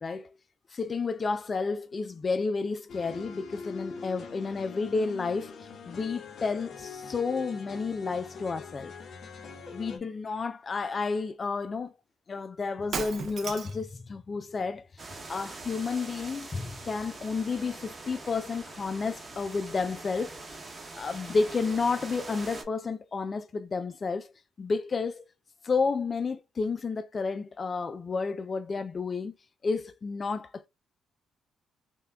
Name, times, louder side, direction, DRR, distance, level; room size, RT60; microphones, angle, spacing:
voice 1, 0.0-0.3 0.7-8.9 9.7-11.9 12.3-20.6 20.9-24.3 24.6-25.2 25.6-29.3 29.6-30.7, left 4 dB, 35° left, 0.3 m, -31 dB
sound 1, 2.9-10.0, left 5 dB, 55° left, 0.9 m, -43 dB
Shatter, 12.9-13.9, right 5 dB, 55° right, 0.6 m, -35 dB
sound 2, 15.0-22.6, right 3 dB, 30° right, 0.9 m, -43 dB
5.4 x 2.2 x 2.2 m
cardioid pair, 90°, 0 cm